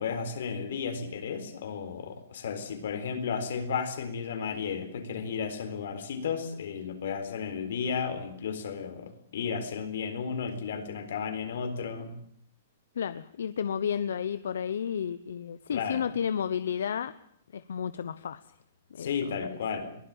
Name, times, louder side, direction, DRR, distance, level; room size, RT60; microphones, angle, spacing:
voice 1, 0.0-12.2 15.7-16.0 19.0-19.9, left 6 dB, 65° left, 9 dB, 4.1 m, -33 dB
voice 2, 13.0-17.1 17.5-18.4 18.9-19.4, left 8 dB, 85° left, 14 dB, 0.9 m, -32 dB
23.0 x 16.0 x 9.1 m, 0.69 s
hypercardioid pair, 170°, 0 cm